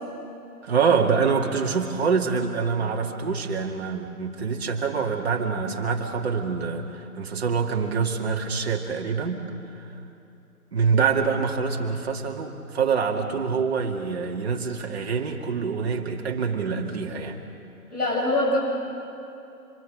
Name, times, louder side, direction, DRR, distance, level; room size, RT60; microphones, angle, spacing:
voice 1, 0.6-9.4 10.7-17.4, right 5 dB, 40° right, 1 dB, 2.4 m, -25 dB
voice 2, 17.9-18.6, left 1 dB, 75° left, -2 dB, 7.4 m, -23 dB
27.0 x 25.0 x 6.5 m, 2.7 s
figure-of-eight pair, 145°, 46 cm